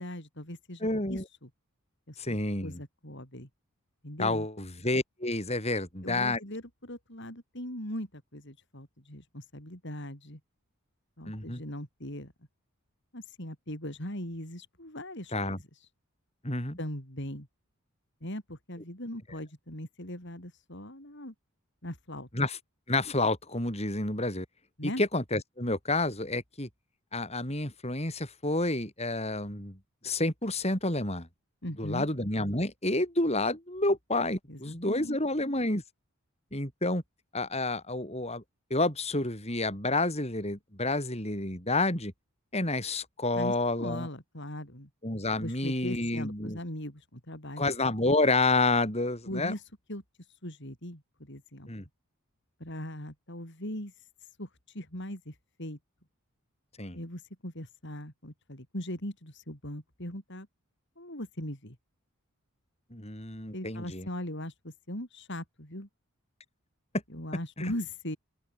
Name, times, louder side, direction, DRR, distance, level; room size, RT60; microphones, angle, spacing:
voice 1, 0.0-1.5 2.1-3.5 4.0-4.5 6.0-10.4 11.2-12.3 13.1-15.6 16.8-17.5 18.2-21.3 21.8-22.3 24.8-25.0 31.6-32.1 34.5-35.2 43.3-44.9 45.4-47.6 49.3-49.6 49.9-50.0 50.4-51.9 52.6-53.9 54.4-54.5 54.7-55.8 56.9-60.5 61.0-61.8 63.5-65.9 67.1-68.2, left 1 dB, 50° left, 7.2 m, -40 dB
voice 2, 0.8-1.2 2.2-2.8 4.2-6.4 11.3-11.6 15.3-15.6 16.4-16.8 22.3-22.6 22.9-24.5 25.0-26.7 27.1-29.8 30.0-31.3 31.8-35.8 36.5-37.0 37.3-38.4 38.7-42.1 42.5-44.1 45.0-46.6 47.6-49.5 51.7-51.9 56.8-57.0 62.9-64.1 67.6-67.7, left 2 dB, 30° left, 7.2 m, -29 dB
open air
head